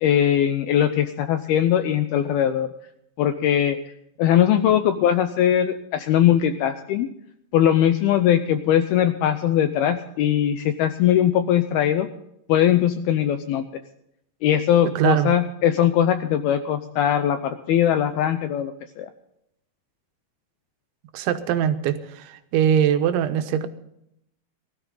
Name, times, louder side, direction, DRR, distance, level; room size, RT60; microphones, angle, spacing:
voice 1, 0.0-2.7 3.2-3.8 4.2-7.1 7.5-12.1 12.5-13.7 14.4-18.7 19.0-19.1, left 10 dB, 80° left, 9 dB, 2.2 m, -20 dB
voice 2, 15.0-15.3 21.1-23.7, right 9 dB, 85° right, 9 dB, 3.4 m, -22 dB
19.5 x 13.5 x 3.9 m, 0.78 s
omnidirectional pair, 5.2 m